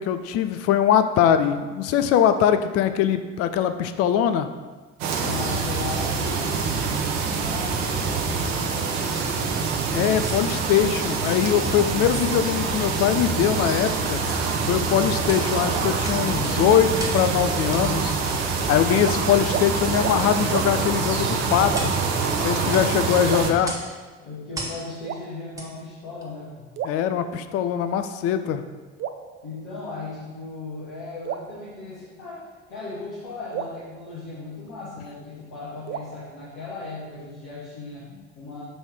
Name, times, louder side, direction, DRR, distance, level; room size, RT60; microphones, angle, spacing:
voice 1, 0.0-4.5 9.9-14.2 14.6-18.2 18.7-21.9 22.4-23.8 26.8-28.6, left 9 dB, 45° left, 10 dB, 0.4 m, -22 dB
sound 1, 5.0-23.5, right 4 dB, 55° right, 0.8 m, -25 dB
voice 2, 5.2-7.0 7.3-9.7 22.5-23.3 24.2-26.7 29.4-38.6, left 3 dB, 65° left, -8 dB, 1.3 m, -37 dB
sound 2, 10.0-10.4 11.2-11.4 12.1-12.3 13.1-13.2 14.1-14.5 15.2-15.5 16.0-16.3 17.0-17.3 17.7-17.8 18.3-18.4 19.1-19.3 19.8-20.0 20.9-21.1 21.7-22.0 22.7-22.9 23.6-23.9 24.5-24.8 25.5-25.7 26.2-26.3, right 1 dB, 10° right, 1.4 m, -37 dB
sound 3, 19.0-19.2 19.5-19.7 20.0-20.2 20.5-20.7 21.7-22.1 23.3-24.1 25.0-25.8 26.8-27.7 29.0-30.1 31.2-32.4 33.5-35.0 35.9-37.1, right 8 dB, 40° right, 0.4 m, -35 dB
6.2 x 3.2 x 4.8 m, 1.3 s
figure-of-eight pair, 50°, 32 cm